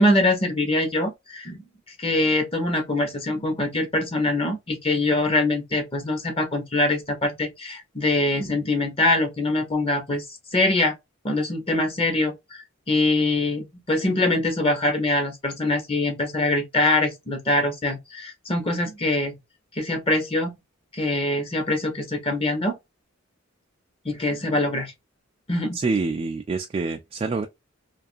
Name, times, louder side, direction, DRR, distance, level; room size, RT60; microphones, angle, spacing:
voice 1, 0.0-1.6 2.0-10.2 10.5-11.0 11.2-19.3 19.7-20.5 20.9-22.8 24.0-24.9 25.5-25.8, left 2 dB, 30° left, 0.8 m, -23 dB
voice 2, 25.7-27.5, right 3 dB, 30° right, 0.3 m, -26 dB
2.5 x 2.4 x 2.5 m
head